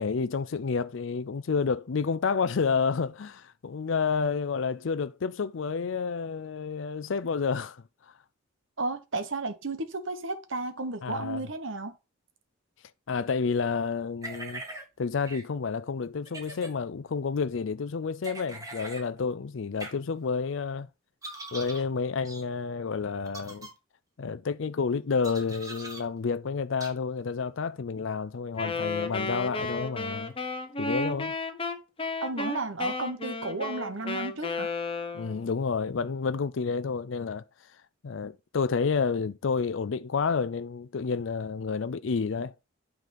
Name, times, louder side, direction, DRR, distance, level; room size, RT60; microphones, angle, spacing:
voice 1, 0.0-7.8 11.0-11.4 13.1-14.6 15.0-20.9 21.5-23.7 24.2-30.3 30.8-31.3 35.1-37.4 38.0-42.5, left 5 dB, 65° left, 0.5 m, -30 dB
voice 2, 8.8-12.0 32.2-34.7, right 2 dB, 65° right, 1.3 m, -33 dB
sound 1, 14.2-14.8 15.2-15.4 16.2-16.7 18.2-19.0 19.8-19.9 21.2-21.8 22.2-22.4 23.3-23.7 25.2-26.0 26.8-26.9, right 2 dB, 15° right, 1.9 m, -41 dB
Wind instrument woodwind instrument, 28.6-35.5, left 3 dB, 25° left, 0.9 m, -33 dB
9.2 x 3.9 x 5.2 m
head